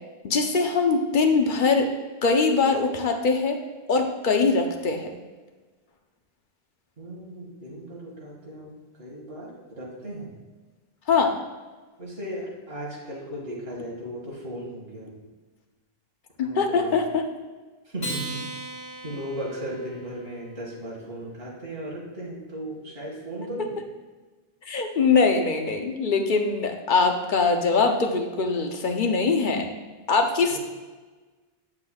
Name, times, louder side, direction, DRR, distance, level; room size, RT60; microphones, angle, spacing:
voice 1, 0.2-1.9 2.2-3.6 3.9-5.2 11.1-11.3 16.4-17.3 24.7-29.7 30.1-30.6, left 4 dB, 55° left, 4 dB, 0.8 m, -22 dB
voice 2, 7.0-8.7 9.0-10.3 12.0-15.1 16.4-17.0 17.9-18.4 19.0-23.7 30.5-30.6, right 1 dB, 70° right, -5 dB, 2.3 m, -36 dB
Acoustic guitar, 18.0-20.7, right 1 dB, 30° left, 1.9 m, -37 dB
8.0 x 7.3 x 2.3 m, 1.3 s
omnidirectional pair, 1.0 m